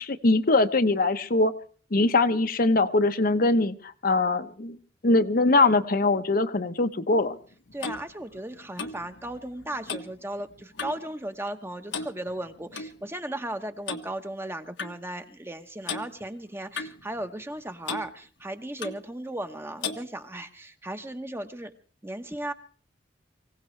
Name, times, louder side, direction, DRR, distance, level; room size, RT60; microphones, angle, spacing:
voice 1, 0.0-1.5 1.9-4.8 5.0-7.3, left 2 dB, 50° left, 9 dB, 0.9 m, -22 dB
Clock, 7.3-11.1 11.4-11.6 11.9-12.9 13.9-14.1 14.8-15.0 15.9-16.1 16.7-17.6 17.9-18.1 18.8-19.0 19.8-20.1, left 5 dB, 80° left, 1.4 m, -36 dB
voice 2, 7.7-21.7 22.0-22.5, right 1 dB, 15° right, 8 dB, 1.1 m, -36 dB
24.5 x 17.0 x 3.3 m, 0.43 s
head